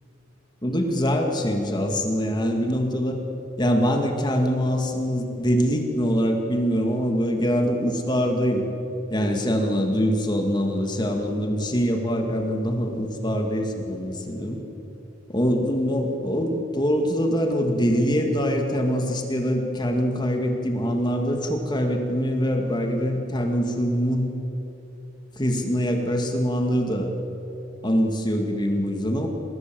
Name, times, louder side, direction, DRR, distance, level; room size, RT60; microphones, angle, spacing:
voice 1, 0.6-3.2 3.6-8.6 9.1-14.6 15.3-24.3 25.4-27.1 27.8-29.3, equal, 20° left, 3 dB, 2.1 m, -24 dB
28.5 x 20.0 x 7.8 m, 3.0 s
head